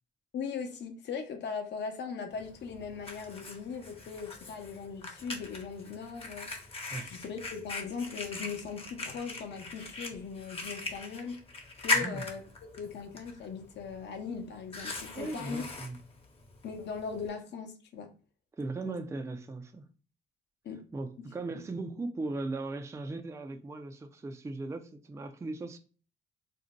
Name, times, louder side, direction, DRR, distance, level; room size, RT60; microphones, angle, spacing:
voice 1, 0.3-6.5 7.0-11.4 11.8-12.4 12.7-15.6 16.6-18.1 18.8-19.0 20.6-20.8 21.2-21.3, left 5 dB, 60° left, 0.7 m, -39 dB
Fire, 2.3-17.3, left 3 dB, 30° left, 0.8 m, -40 dB
voice 2, 11.9-12.3 15.2-16.0 18.6-19.8 20.9-25.8, right 2 dB, 15° right, 0.4 m, -38 dB
2.6 x 2.1 x 3.9 m
cardioid pair, 90°, 20 cm